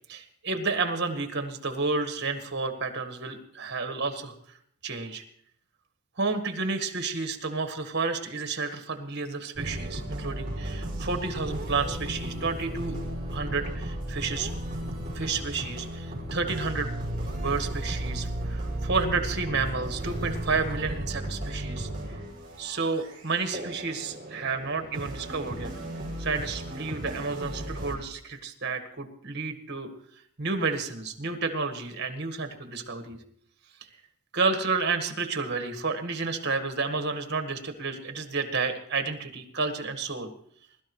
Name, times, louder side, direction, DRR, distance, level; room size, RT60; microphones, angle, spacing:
voice 1, 0.1-4.3 4.8-5.2 6.2-13.0 13.3-14.5 15.1-21.9 22.6-25.7 26.2-29.9 30.4-33.2 34.3-40.3, right 4 dB, 55° right, 7 dB, 1.6 m, -31 dB
sound 1, 9.5-27.9, right 1 dB, 25° right, 5.0 m, -35 dB
22.0 x 12.5 x 3.2 m, 0.64 s
head